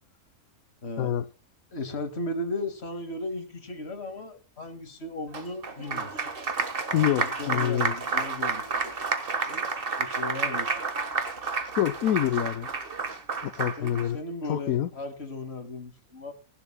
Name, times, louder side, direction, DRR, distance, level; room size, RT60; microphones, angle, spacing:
voice 1, 0.8-1.1 1.7-6.2 6.9-9.1 9.4-9.6 10.0-10.8 13.8-16.3, left 2 dB, 45° left, 2.4 m, -36 dB
Applause, 5.3-14.1, right 4 dB, 40° right, 1.6 m, -30 dB
voice 2, 6.9-7.9 11.8-12.7 13.4-14.2 14.5-14.9, left 11 dB, 70° left, 1.2 m, -26 dB
19.5 x 12.0 x 2.2 m
omnidirectional pair, 1.6 m